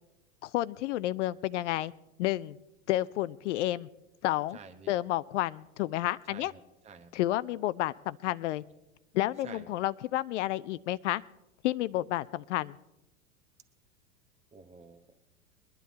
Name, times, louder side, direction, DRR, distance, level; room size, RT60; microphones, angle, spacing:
voice 1, 0.4-1.9 2.2-2.6 2.9-3.9 4.2-4.6 4.9-6.5 7.1-8.6 9.1-11.2 11.6-12.8, left 15 dB, 55° left, 16 dB, 0.5 m, -30 dB
voice 2, 4.5-4.9 6.3-7.1 9.4-9.7 14.5-15.1, right 5 dB, 15° right, 8 dB, 1.0 m, -49 dB
22.5 x 10.5 x 4.1 m, 0.93 s
hypercardioid pair, 95°, 42 cm